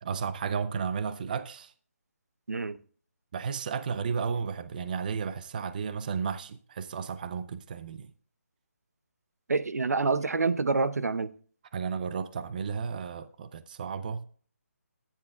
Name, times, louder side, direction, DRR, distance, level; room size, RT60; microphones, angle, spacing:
voice 1, 0.0-1.7 3.3-8.1 11.7-14.2, right 6 dB, 35° right, 0.5 m, -33 dB
voice 2, 9.5-11.3, right 4 dB, 90° right, 0.7 m, -27 dB
14.5 x 9.9 x 2.2 m
hypercardioid pair, 160°, 8 cm